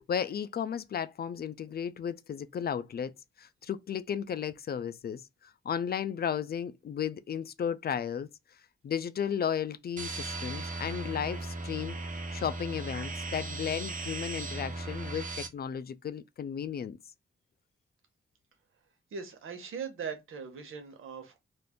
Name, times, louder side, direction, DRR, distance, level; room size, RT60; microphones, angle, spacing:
voice 1, 0.0-3.1 3.4-8.3 8.8-12.0 12.3-17.0, left 8 dB, 50° left, 0.4 m, -34 dB
sound 1, 10.0-15.5, right 2 dB, 40° right, 0.7 m, -37 dB
voice 2, 19.1-21.4, right 6 dB, 90° right, 0.9 m, -40 dB
2.5 x 2.5 x 3.5 m
cardioid pair, 85°, 21 cm